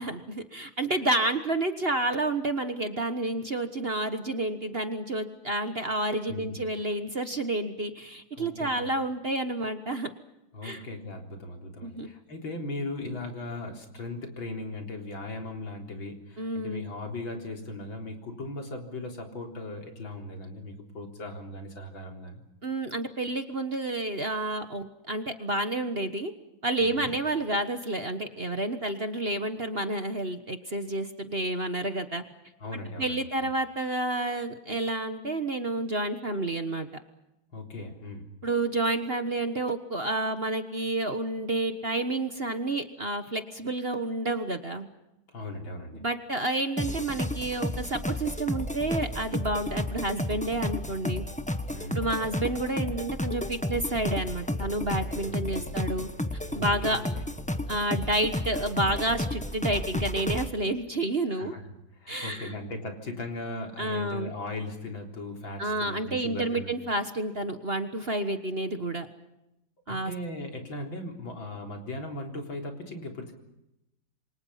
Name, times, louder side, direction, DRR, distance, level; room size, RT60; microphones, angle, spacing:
voice 1, 0.0-10.1 10.6-10.8 11.8-12.1 16.4-16.9 22.6-26.3 26.6-32.2 32.7-36.9 38.4-44.9 45.9-51.2 51.9-56.1 56.5-57.0 57.7-61.5 62.1-62.5 63.8-64.3 65.6-69.1 69.9-70.1, right 2 dB, 35° right, 8 dB, 1.4 m, -30 dB
voice 2, 8.3-8.9 10.5-22.4 26.8-27.1 32.6-33.5 37.5-38.3 45.3-46.0 51.7-52.0 55.3-55.7 56.5-57.2 61.3-61.6 61.9-66.7 69.9-73.3, left 2 dB, 80° left, 3 dB, 4.5 m, -38 dB
sound 1, 46.8-60.5, left 1 dB, 5° left, 1.0 m, -32 dB
28.5 x 24.5 x 5.7 m, 0.86 s
omnidirectional pair, 2.1 m